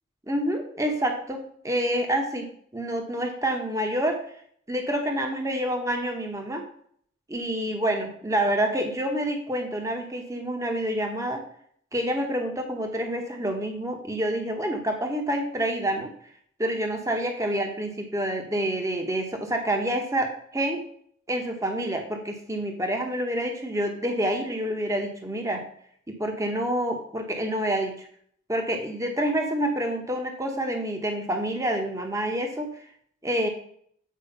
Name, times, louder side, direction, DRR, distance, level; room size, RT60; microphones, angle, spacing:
voice 1, 0.3-4.2 4.7-6.6 7.3-11.4 11.9-16.1 16.6-20.8 21.3-25.6 26.1-28.1 28.5-32.7 33.2-33.5, right 1 dB, 15° right, 4 dB, 1.0 m, -28 dB
7.5 x 4.9 x 5.4 m, 0.63 s
head